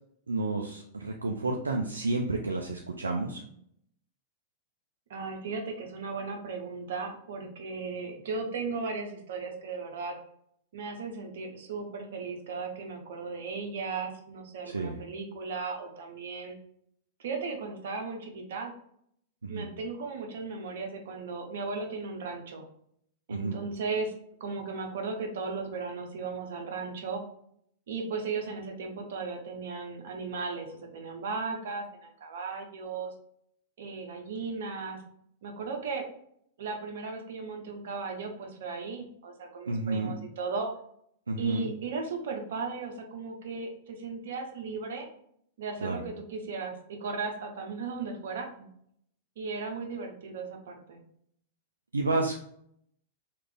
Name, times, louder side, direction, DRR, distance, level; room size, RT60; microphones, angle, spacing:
voice 1, 0.3-3.4 14.7-15.0 19.4-19.7 23.3-23.6 39.7-40.1 41.3-41.7 45.8-46.0 51.9-52.4, right 2 dB, 85° right, 2 dB, 0.3 m, -30 dB
voice 2, 5.1-10.2 10.7-16.6 17.2-18.7 19.5-22.6 23.3-24.1 24.4-27.2 27.9-33.1 33.8-35.0 35.4-36.0 36.6-40.7 41.4-45.1 45.6-48.7 49.4-51.0, right 4 dB, 65° right, 3 dB, 0.7 m, -36 dB
3.2 x 2.4 x 3.4 m, 0.69 s
figure-of-eight pair, 100°, 0 cm